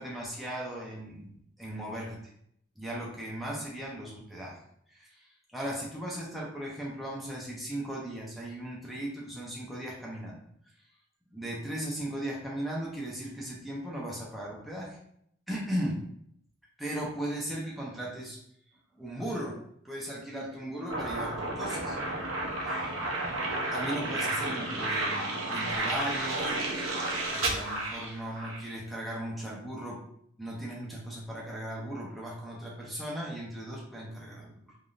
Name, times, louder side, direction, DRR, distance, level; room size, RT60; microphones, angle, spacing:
voice 1, 0.0-2.2 2.8-4.6 4.9-10.4 11.3-15.0 15.5-16.0 16.8-18.4 18.9-19.6 19.8-22.0 22.5-22.9 23.7-26.6 27.3-30.0 30.4-34.8, right 1 dB, ahead, -5 dB, 0.6 m, -37 dB
sound 1, 20.9-28.7, right 2 dB, 90° right, 0.6 m, -32 dB
3.4 x 2.6 x 2.4 m, 0.69 s
head